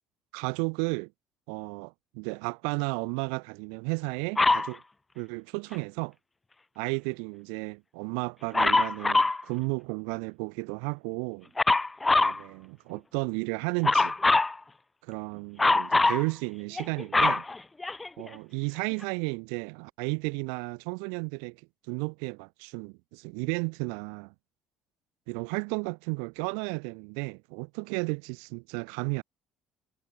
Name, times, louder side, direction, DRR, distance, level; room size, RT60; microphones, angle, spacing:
voice 1, 0.3-1.1 1.5-4.8 5.1-6.1 6.8-11.5 12.2-14.1 15.0-17.4 18.2-21.6 21.9-24.3 25.3-29.2, right 40 dB or more, 75° right, 1.2 m, -33 dB
Dog, 4.4-4.7 8.5-9.4 11.6-12.4 13.8-14.5 15.6-16.2 16.8-18.3 19.0-19.1, left 3 dB, 20° left, 0.9 m, -23 dB
hypercardioid pair, 60°, 0 cm